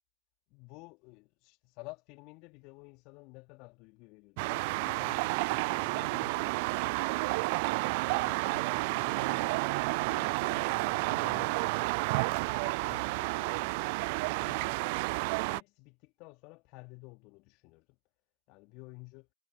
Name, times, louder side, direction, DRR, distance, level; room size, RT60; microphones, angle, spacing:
voice 1, 0.5-6.6 7.2-9.6 10.0-12.1 12.5-13.9 14.2-15.2 15.5-18.0 18.5-19.3, left 28 dB, 55° left, 3.0 m, -52 dB
sound 1, 4.4-15.6, right 28 dB, 60° right, 0.4 m, -31 dB
figure-of-eight pair, 80°, 0 cm